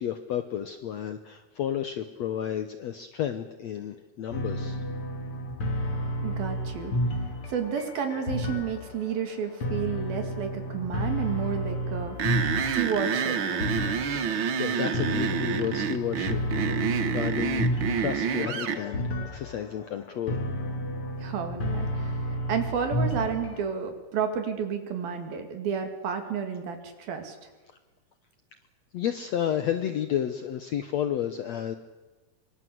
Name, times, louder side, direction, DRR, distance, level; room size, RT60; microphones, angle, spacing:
voice 1, 0.0-4.8 14.0-20.4 28.9-31.8, left 10 dB, 75° left, 9 dB, 1.6 m, -32 dB
sound 1, 4.3-23.7, equal, 40° left, 3.0 m, -31 dB
voice 2, 6.2-7.0 7.5-12.2 12.7-13.6 21.2-27.4, right 7 dB, 70° right, 6 dB, 4.2 m, -31 dB
sound 2, 12.2-18.8, right 7 dB, 90° right, 1.1 m, -28 dB
24.5 x 24.0 x 7.9 m, 1.2 s
omnidirectional pair, 4.4 m